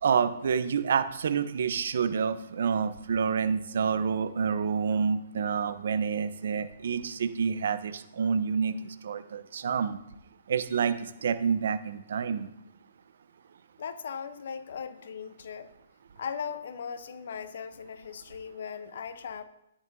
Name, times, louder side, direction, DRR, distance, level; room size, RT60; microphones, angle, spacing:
voice 1, 0.0-10.0 10.5-12.5, right 6 dB, 65° right, 11 dB, 0.9 m, -28 dB
voice 2, 13.8-15.7 16.2-19.4, left 6 dB, 65° left, 11 dB, 0.9 m, -38 dB
13.0 x 10.0 x 2.8 m, 0.81 s
hypercardioid pair, 135°, 0 cm